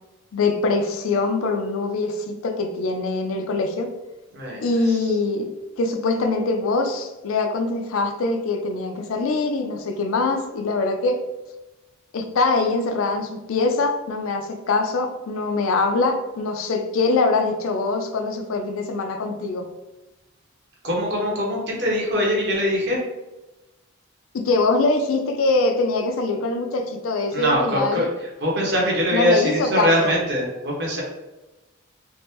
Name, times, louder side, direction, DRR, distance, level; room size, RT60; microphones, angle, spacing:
voice 1, 0.3-3.9 4.6-5.5 5.8-11.2 12.1-19.7 24.3-28.1 29.1-30.1, left 3 dB, 70° left, 5 dB, 0.4 m, -23 dB
voice 2, 4.3-5.1 20.8-23.0 27.3-28.1 28.4-31.0, equal, 50° right, -3 dB, 0.9 m, -22 dB
3.4 x 2.0 x 2.8 m, 1.1 s
head